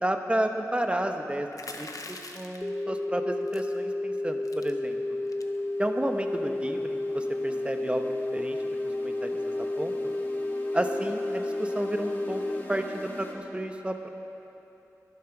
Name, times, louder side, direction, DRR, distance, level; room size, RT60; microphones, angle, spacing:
voice 1, 0.0-1.5 1.8-5.0 5.8-8.1 8.3-8.6 9.0-9.3 9.8-10.1 10.7-12.4 12.7-14.1, right 1 dB, 20° right, 5 dB, 1.0 m, -31 dB
sound 1, 1.5-2.7 3.5-3.8 4.1-4.2 4.4-4.7 5.3-5.6, left 2 dB, 65° left, 0.9 m, -42 dB
sound 2, 2.6-12.6, left 2 dB, 15° left, 0.4 m, -31 dB
sound 3, 4.2-13.3, left 1 dB, 30° left, 2.0 m, -44 dB
11.5 x 11.5 x 6.0 m, 2.9 s
wide cardioid pair, 55°, 6 cm